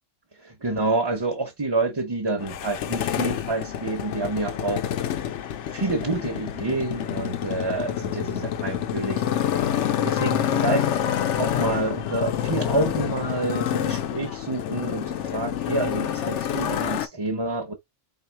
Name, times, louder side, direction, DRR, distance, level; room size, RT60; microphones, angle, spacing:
voice 1, 0.4-4.9 5.7-9.2 10.0-10.9 11.3-17.7, right 3 dB, 25° right, 0.7 m, -28 dB
Motorcycle, 2.4-17.1, left 10 dB, 70° left, 0.9 m, -27 dB
3.4 x 2.6 x 4.5 m
omnidirectional pair, 1.3 m